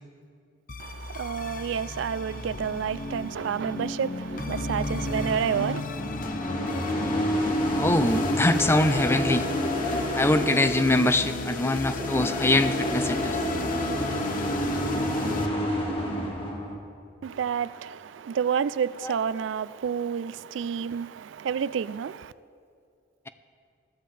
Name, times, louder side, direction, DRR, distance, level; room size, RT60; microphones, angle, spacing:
sound 1, 0.7-15.5, left 3 dB, 45° left, 0.8 m, -34 dB
voice 1, 0.8-5.8 17.2-22.3, right 7 dB, 80° right, 0.3 m, -29 dB
sound 2, 5.7-16.7, equal, 30° left, 1.8 m, -29 dB
voice 2, 7.7-9.5 10.1-13.4 19.0-19.1, left 1 dB, 15° left, 0.5 m, -23 dB
21.0 x 14.0 x 3.3 m
head